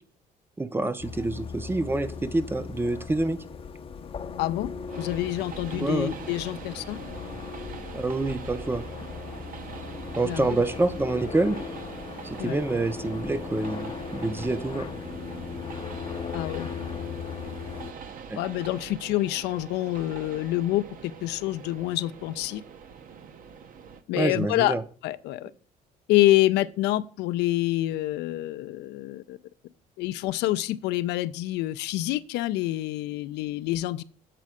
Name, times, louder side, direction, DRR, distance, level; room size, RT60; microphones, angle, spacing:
voice 1, 0.6-3.4 5.7-6.1 7.9-8.8 10.2-11.6 12.2-14.9 18.3-18.4 24.2-24.8, right 2 dB, 15° right, 0.5 m, -27 dB
sound 1, 1.0-17.9, left 6 dB, 35° left, 0.5 m, -38 dB
voice 2, 4.4-4.7 5.0-7.0 10.2-10.6 12.4-12.6 16.3-16.7 18.3-22.6 24.1-24.7 25.0-25.5 26.1-29.4 30.0-34.0, left 15 dB, 85° left, 0.4 m, -27 dB
Train, 4.9-24.0, right 6 dB, 55° right, 0.7 m, -43 dB
7.5 x 4.1 x 4.8 m
cardioid pair, 110°, 17 cm